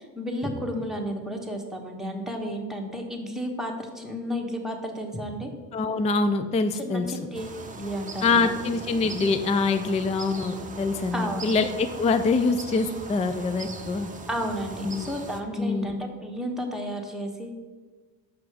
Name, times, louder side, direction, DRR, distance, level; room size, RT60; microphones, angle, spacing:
voice 1, 0.0-5.5 6.7-8.5 11.1-11.5 14.3-17.5, equal, ahead, 0 dB, 1.2 m, -32 dB
voice 2, 5.7-7.1 8.2-14.1 14.8-15.1 15.6-16.1, left 4 dB, 15° left, 9 dB, 0.3 m, -25 dB
sound 1, 7.3-15.4, right 3 dB, 20° right, 0.7 m, -40 dB
6.1 x 5.7 x 4.9 m, 1.4 s
cardioid pair, 95°, 42 cm